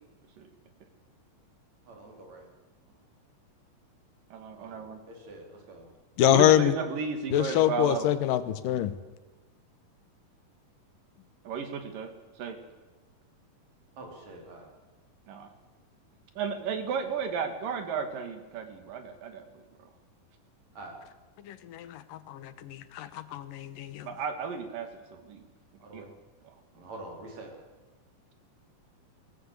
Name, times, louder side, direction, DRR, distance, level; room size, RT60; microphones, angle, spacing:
voice 1, 1.9-2.5 4.6-5.9 14.0-14.7 20.8-21.0 25.8-26.1 26.7-27.5, right 2 dB, 55° right, 1 dB, 5.3 m, -46 dB
voice 2, 4.3-5.0 6.2-8.1 11.5-12.1 12.4-12.6 15.3-15.5 16.4-19.6 24.0-25.4 25.9-26.1 26.4-26.6, right 6 dB, 80° right, 7 dB, 3.8 m, -34 dB
voice 3, 6.2-6.7 7.3-8.9 21.5-24.1, left 12 dB, 80° left, 13 dB, 2.7 m, -25 dB
23.0 x 17.5 x 8.3 m, 1.2 s
omnidirectional pair, 3.9 m